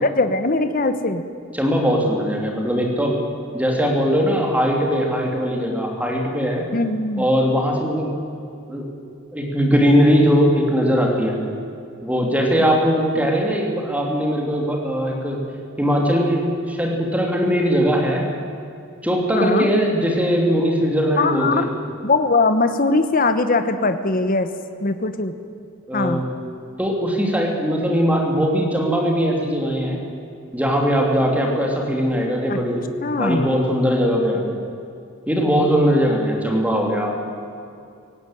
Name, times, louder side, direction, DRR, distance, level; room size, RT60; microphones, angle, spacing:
voice 1, 0.0-1.2 6.7-7.2 13.2-13.3 19.3-19.7 21.2-21.7 22.0-24.5 24.8-25.3 25.9-26.2 32.5-32.6 33.0-33.5, left 3 dB, 40° left, 9 dB, 1.1 m, -20 dB
voice 2, 1.5-3.2 3.5-6.7 7.2-8.1 8.7-8.9 9.3-11.4 12.0-15.4 15.8-18.2 19.0-21.7 25.9-26.3 26.8-30.0 30.5-34.5 35.3-37.1, equal, 5° right, 0 dB, 3.1 m, -20 dB
17.5 x 17.0 x 9.2 m, 2.5 s
head